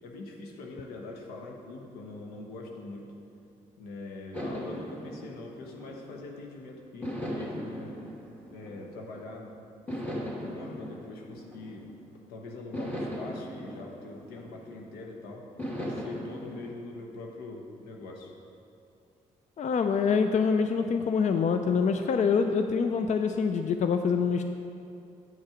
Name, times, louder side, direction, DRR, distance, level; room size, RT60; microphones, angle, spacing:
voice 1, 0.0-3.1 3.8-8.0 8.5-9.5 9.9-11.9 12.3-15.4 15.8-18.3, left 2 dB, 85° left, 0 dB, 1.1 m, -43 dB
sound 1, 4.3-6.4 7.0-9.3 9.9-12.1 12.7-15.0 15.6-16.7, equal, 10° left, 2.3 m, -38 dB
voice 2, 19.6-24.4, left 5 dB, 50° left, 7 dB, 0.5 m, -25 dB
9.2 x 6.4 x 5.0 m, 2.7 s
supercardioid pair, 50°, 16 cm